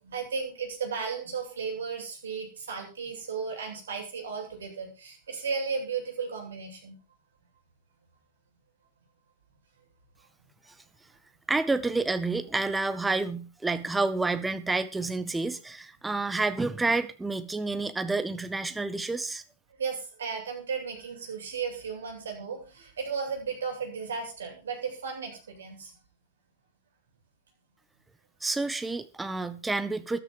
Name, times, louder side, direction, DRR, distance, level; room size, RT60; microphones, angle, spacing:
voice 1, 0.0-7.0 19.8-25.9, right 5 dB, 70° right, 7.9 m, -35 dB
voice 2, 11.5-19.4 28.4-30.2, right 3 dB, 10° right, 1.6 m, -29 dB
13.5 x 13.0 x 5.3 m
figure-of-eight pair, 100°, 0 cm